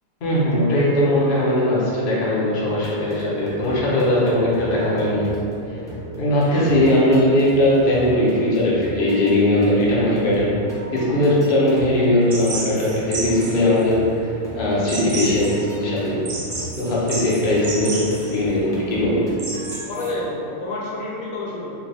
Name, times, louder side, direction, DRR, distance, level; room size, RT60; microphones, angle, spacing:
voice 1, 0.2-5.3 5.7-5.8 6.2-10.7 10.9-14.3 14.5-16.2 16.8-19.3, left 1 dB, 45° left, -7 dB, 0.9 m, -19 dB
sound 1, 2.7-19.8, equal, 5° left, 0.5 m, -36 dB
voice 2, 6.5-6.9 19.9-21.7, left 2 dB, 75° left, -6 dB, 1.1 m, -29 dB
sound 2, 12.3-20.1, right 2 dB, 45° right, 0.5 m, -32 dB
4.5 x 2.3 x 3.4 m, 2.8 s
omnidirectional pair, 1.5 m